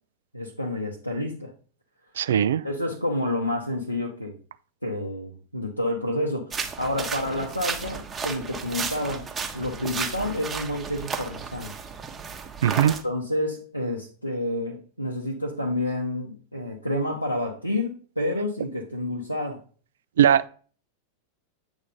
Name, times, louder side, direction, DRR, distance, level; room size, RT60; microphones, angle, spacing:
voice 1, 0.3-1.5 2.6-4.4 4.8-9.3 9.5-11.7 13.0-19.6, left 1 dB, 90° left, 1.0 m, -29 dB
voice 2, 2.2-2.6 12.6-13.0 20.2-20.5, right 9 dB, 60° right, 0.3 m, -19 dB
sound 1, 6.5-13.0, right 5 dB, 20° right, 0.9 m, -33 dB
8.2 x 3.7 x 5.1 m
figure-of-eight pair, 90°, 0 cm